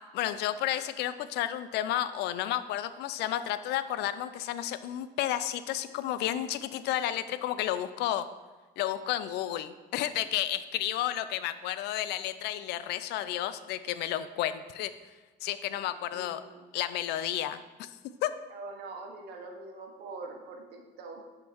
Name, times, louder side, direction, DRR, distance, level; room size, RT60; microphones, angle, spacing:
voice 1, 0.1-8.3 8.8-14.9 15.4-16.4 16.7-17.9 18.2-18.3, left 12 dB, 85° left, 13 dB, 0.4 m, -32 dB
voice 2, 15.7-16.6 18.5-21.2, right 3 dB, 75° right, 2 dB, 1.2 m, -44 dB
8.7 x 3.7 x 4.5 m, 1.3 s
cardioid pair, 110°, 17 cm